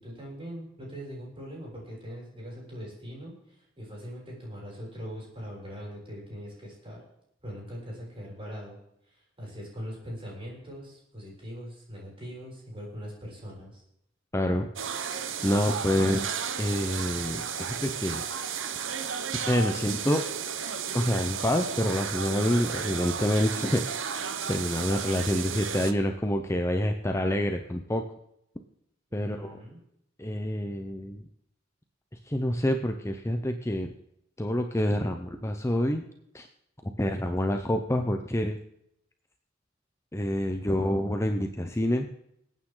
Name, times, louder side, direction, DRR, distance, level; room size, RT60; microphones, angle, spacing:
voice 1, 0.0-7.0 7.4-8.8 9.1-13.8 29.1-29.8, equal, 30° right, -4 dB, 6.9 m, -41 dB
voice 2, 14.3-14.7 15.4-16.3 16.6-18.2 19.3-20.2 20.9-23.8 24.5-28.0 29.1-29.6 30.2-31.2 32.3-33.9 34.4-36.0 36.3-36.5 36.8-38.6 40.1-42.1, left 1 dB, 15° left, 5 dB, 0.7 m, -27 dB
sound 1, 14.8-25.9, right 7 dB, 80° right, 1.0 m, -33 dB
26.0 x 8.9 x 3.9 m, 0.79 s
head